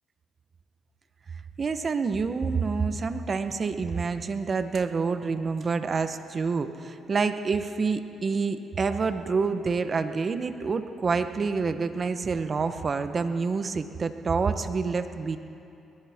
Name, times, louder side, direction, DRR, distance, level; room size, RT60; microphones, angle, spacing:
voice 1, 1.6-15.4, right 4 dB, 40° right, 10 dB, 0.9 m, -27 dB
21.0 x 18.5 x 3.6 m, 2.7 s
cardioid pair, 90°, 0 cm